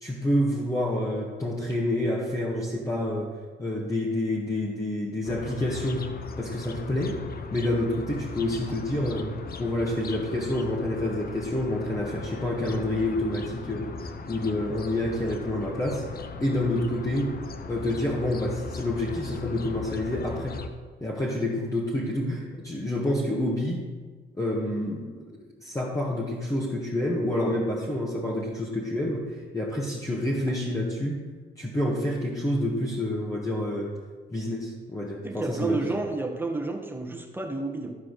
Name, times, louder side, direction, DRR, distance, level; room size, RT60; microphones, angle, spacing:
voice 1, 0.0-6.1 6.4-7.2 7.5-16.1 16.4-17.4 17.7-20.6 21.0-23.8 24.4-25.3 25.6-31.2 31.6-34.0 34.3-35.9, left 1 dB, 15° left, -4 dB, 1.7 m, -28 dB
sound 1, 5.2-20.7, left 4 dB, 50° left, 0.9 m, -39 dB
voice 2, 35.2-37.9, right 2 dB, 10° right, 2 dB, 1.5 m, -30 dB
13.0 x 4.9 x 6.4 m, 1.4 s
cardioid pair, 90°, 20 cm